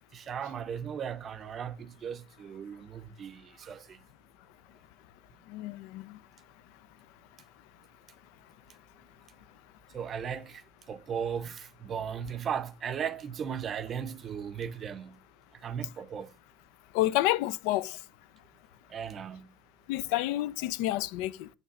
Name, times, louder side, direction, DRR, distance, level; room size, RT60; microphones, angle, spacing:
voice 1, 0.1-4.0 9.9-15.2 15.6-16.3 18.9-19.5, right 7 dB, 40° right, 0.5 m, -37 dB
voice 2, 5.5-6.2 16.9-18.0 19.9-21.5, left 16 dB, 80° left, 0.3 m, -29 dB
7.1 x 3.2 x 5.8 m
supercardioid pair, 110°, 0 cm